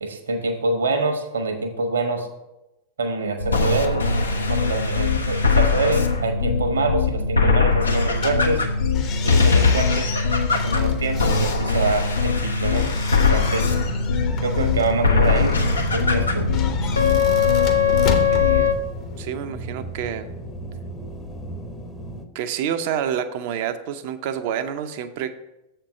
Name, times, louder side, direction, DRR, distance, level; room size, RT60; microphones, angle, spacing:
voice 1, 0.0-2.3 3.0-4.1 4.5-8.6 9.2-10.1 10.5-12.9 13.3-13.7 14.4-15.6 15.9-16.5, right 3 dB, 75° right, 6 dB, 1.1 m, -25 dB
sound 1, 3.4-18.7, left 5 dB, 75° left, 0.8 m, -20 dB
sound 2, 8.1-19.3, left 6 dB, 40° left, 0.9 m, -35 dB
sound 3, 13.2-22.2, equal, 10° left, 0.8 m, -33 dB
voice 2, 18.3-18.7 19.2-20.3 22.3-25.4, right 9 dB, 50° right, 9 dB, 0.6 m, -28 dB
7.4 x 4.4 x 6.4 m, 0.95 s
figure-of-eight pair, 90°, 0 cm